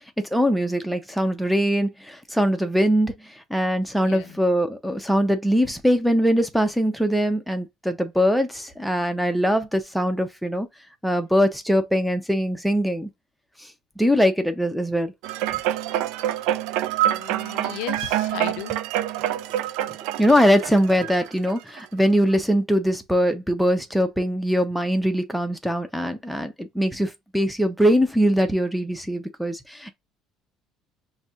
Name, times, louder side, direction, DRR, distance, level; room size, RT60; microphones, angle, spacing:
voice 1, 0.2-10.7 11.0-13.1 14.0-15.1 20.2-29.9, equal, ahead, 0.5 m, -22 dB
voice 2, 4.0-4.4 17.1-18.7, left 15 dB, 85° left, 0.4 m, -35 dB
sound 1, 15.2-21.8 22.3-22.4, right 12 dB, 85° right, 0.3 m, -26 dB
5.8 x 2.7 x 2.4 m
cardioid pair, 175°, 0 cm